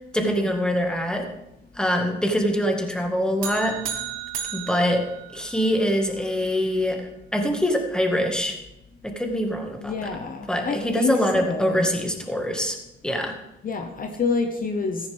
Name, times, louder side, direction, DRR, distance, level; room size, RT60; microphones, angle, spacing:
voice 1, 0.1-1.3 1.8-3.8 4.5-5.1 5.3-7.0 7.3-8.6 9.0-9.9 10.5-12.8 13.0-13.3, equal, 5° left, 3 dB, 1.9 m, -24 dB
sound 1, 3.4-5.9, right 9 dB, 80° right, 1.4 m, -34 dB
voice 2, 9.8-11.9 13.6-15.1, left 4 dB, 45° left, 5 dB, 1.1 m, -27 dB
14.0 x 10.5 x 3.6 m, 0.89 s
cardioid pair, 90°, 20 cm